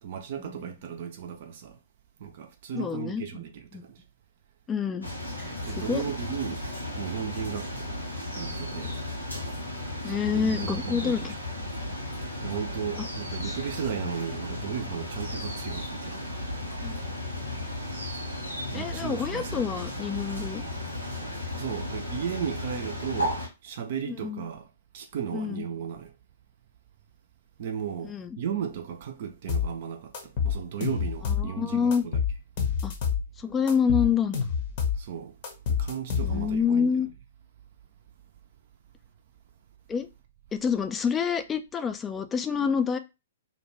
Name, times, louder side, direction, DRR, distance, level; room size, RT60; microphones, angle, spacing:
voice 1, 0.0-1.8 2.2-4.0 5.7-6.7 7.0-8.0 8.3-9.0 10.0-11.3 12.4-16.3 18.7-19.7 21.5-24.7 24.9-26.1 27.6-32.2 35.0-35.3 35.7-36.9, right 8 dB, 45° right, 0.5 m, -35 dB
voice 2, 2.8-3.4 4.7-5.1 5.4-5.5 5.8-6.0 10.0-11.3 13.5-13.6 16.8-16.9 18.7-20.6 24.1-24.4 25.3-25.7 28.0-28.4 31.2-32.0 32.8-32.9 33.4-34.4 36.2-37.1 39.9-40.1 40.5-43.0, left 6 dB, 15° left, 0.3 m, -27 dB
sound 1, 5.0-23.5, left 1 dB, 90° left, 1.2 m, -35 dB
sound 2, 29.5-29.7 30.1-31.5 31.9-33.3 33.7-35.0 35.4-36.6, left 7 dB, 40° left, 0.7 m, -28 dB
2.6 x 2.1 x 3.1 m
figure-of-eight pair, 115°, 0 cm